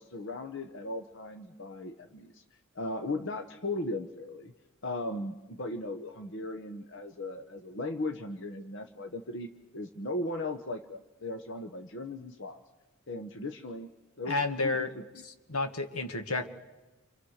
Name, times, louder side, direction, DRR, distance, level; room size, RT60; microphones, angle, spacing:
voice 1, 0.0-2.4 2.7-4.5 4.8-12.6 13.1-13.9 14.2-15.2, left 2 dB, 55° left, 6 dB, 1.1 m, -37 dB
voice 2, 14.3-14.9 15.2-16.5, left 3 dB, 80° left, 7 dB, 1.8 m, -31 dB
29.0 x 26.5 x 6.6 m, 1.1 s
head